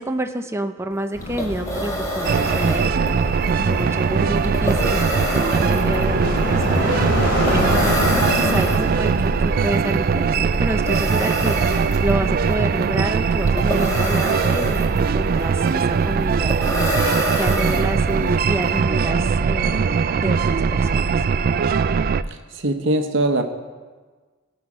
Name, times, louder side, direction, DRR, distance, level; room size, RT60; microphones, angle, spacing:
voice 1, 0.0-3.3 3.6-5.1 5.3-21.2, right 1 dB, 15° right, 6 dB, 0.6 m, -29 dB
sound 1, 0.9-1.0 1.2-18.3, left 1 dB, 15° left, 1.3 m, -29 dB
sound 2, 1.1-16.1, left 1 dB, 60° left, 2.8 m, -28 dB
sound 3, 2.2-22.2, right 5 dB, 45° right, 0.3 m, -20 dB
voice 2, 22.3-23.4, right 2 dB, 65° right, 6 dB, 1.1 m, -22 dB
17.5 x 6.3 x 6.2 m, 1.4 s
head